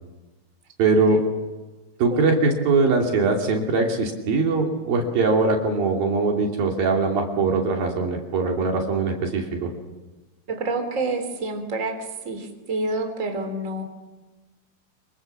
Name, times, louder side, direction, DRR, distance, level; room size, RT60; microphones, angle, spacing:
voice 1, 0.8-1.2 2.0-9.7, right 3 dB, 65° right, 1 dB, 4.6 m, -21 dB
voice 2, 10.5-12.0 12.2-13.8, right 2 dB, 20° right, 5 dB, 3.4 m, -28 dB
26.5 x 24.0 x 7.3 m, 1.2 s
omnidirectional pair, 4.6 m